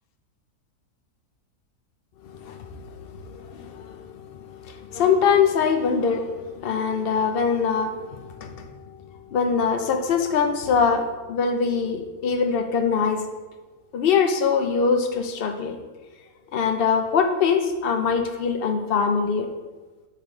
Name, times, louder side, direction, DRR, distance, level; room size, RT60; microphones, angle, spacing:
voice 1, 2.2-9.0 9.3-13.2 13.9-15.8 16.5-19.5, left 6 dB, 55° left, 5 dB, 0.6 m, -23 dB
8.2 x 3.1 x 5.5 m, 1.3 s
omnidirectional pair, 1.7 m